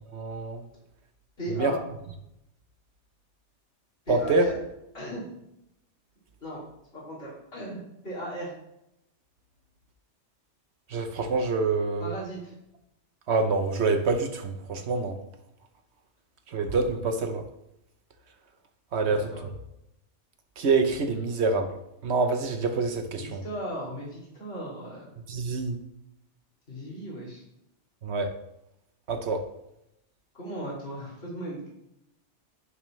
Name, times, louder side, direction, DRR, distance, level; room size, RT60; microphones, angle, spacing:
voice 1, 0.1-0.6 1.6-1.7 4.1-4.5 10.9-12.1 13.3-15.2 16.5-17.5 18.9-19.5 20.6-21.7 22.0-23.4 25.3-25.8 28.0-28.3 29.1-29.5, right 3 dB, 70° right, 7 dB, 1.2 m, -26 dB
voice 2, 1.4-1.8 4.0-4.6 4.9-5.3 6.4-6.6 6.9-7.8 8.0-8.5 12.0-12.5 19.0-19.4 23.2-25.1 26.7-27.4 30.3-31.7, equal, 60° left, -6 dB, 3.1 m, -36 dB
11.0 x 7.4 x 3.2 m, 0.83 s
omnidirectional pair, 1.2 m